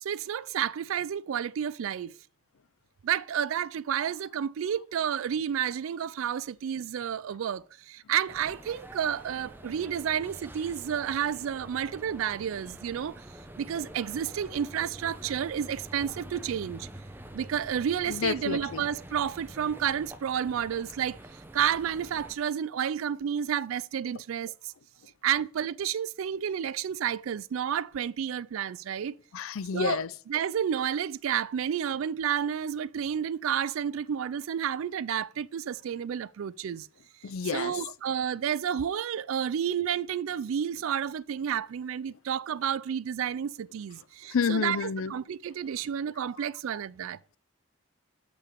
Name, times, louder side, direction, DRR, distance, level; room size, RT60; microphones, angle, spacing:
voice 1, 0.0-2.2 3.0-13.2 13.6-16.9 17.3-21.2 21.5-24.7 25.2-29.1 29.7-30.0 30.3-36.9 37.4-47.2, right 8 dB, 80° right, 0.4 m, -31 dB
Borough - Borough Market, 8.3-22.4, right 1 dB, 10° right, 0.7 m, -46 dB
voice 2, 18.1-18.8 29.3-30.1 37.2-37.7 44.3-45.1, left 6 dB, 80° left, 0.5 m, -29 dB
7.0 x 5.9 x 6.8 m
head